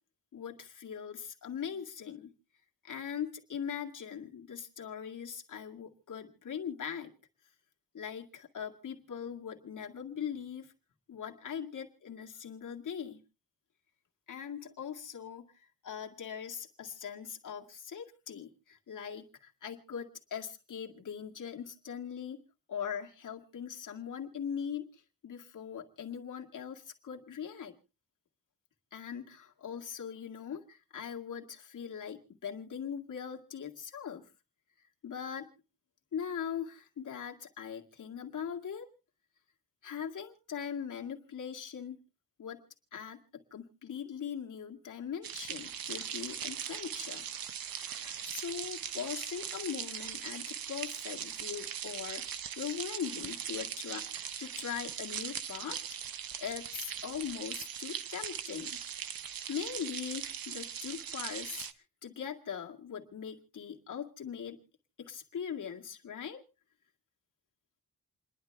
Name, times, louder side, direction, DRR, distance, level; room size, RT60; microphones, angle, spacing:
voice 1, 0.3-2.3 2.8-7.1 7.9-10.7 11.1-13.2 14.3-22.4 22.7-27.8 28.9-34.3 35.0-35.5 36.1-38.9 39.8-42.0 42.4-42.6 42.9-47.3 47.8-55.8 56.4-58.8 59.5-61.7 62.0-64.6 65.0-66.4, left 8 dB, 65° left, 1 dB, 2.1 m, -41 dB
sound 1, 45.2-61.7, right 8 dB, 90° right, 0.9 m, -40 dB
28.5 x 11.0 x 3.4 m, 0.37 s
wide cardioid pair, 165°, 34 cm